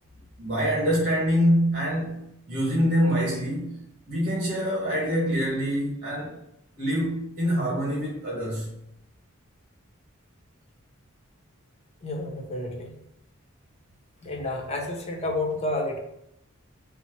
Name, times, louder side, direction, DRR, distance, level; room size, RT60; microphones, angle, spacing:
voice 1, 0.4-2.2 2.5-3.8 4.1-6.3 6.8-8.7, equal, 40° right, -5 dB, 1.3 m, -25 dB
voice 2, 12.0-12.9 14.2-16.0, left 2 dB, 30° left, 0 dB, 0.7 m, -30 dB
4.3 x 2.0 x 4.5 m, 0.79 s
head